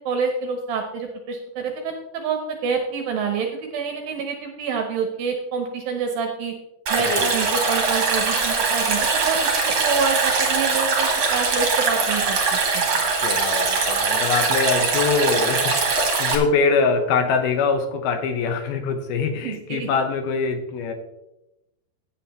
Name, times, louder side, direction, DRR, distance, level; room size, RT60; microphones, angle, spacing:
voice 1, 0.0-6.5 6.9-12.9 19.4-19.9, right 5 dB, 70° right, 3 dB, 2.6 m, -27 dB
Stream, 6.9-16.4, right 4 dB, 45° right, 2.8 m, -22 dB
voice 2, 13.2-20.9, left 5 dB, 75° left, 6 dB, 2.8 m, -23 dB
16.5 x 8.8 x 3.1 m, 0.91 s
omnidirectional pair, 4.6 m